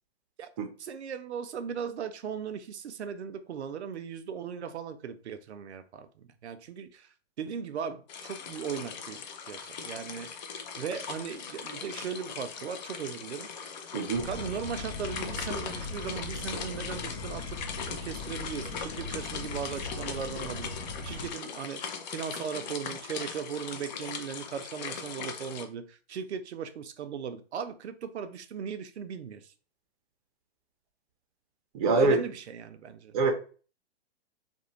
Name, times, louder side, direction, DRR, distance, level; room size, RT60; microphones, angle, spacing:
voice 1, 0.8-7.1 7.4-13.5 14.1-17.6 17.9-20.7 21.0-29.5 31.9-33.1, right 7 dB, 85° right, 0.5 m, -38 dB
sound 1, 8.1-25.7, left 6 dB, 40° left, 0.5 m, -40 dB
voice 2, 13.9-14.3 31.7-32.2 33.1-33.3, right 3 dB, 35° right, 0.5 m, -24 dB
sound 2, 14.1-21.3, left 3 dB, 70° left, 0.9 m, -40 dB
2.5 x 2.1 x 3.0 m
hypercardioid pair, 130°, 33 cm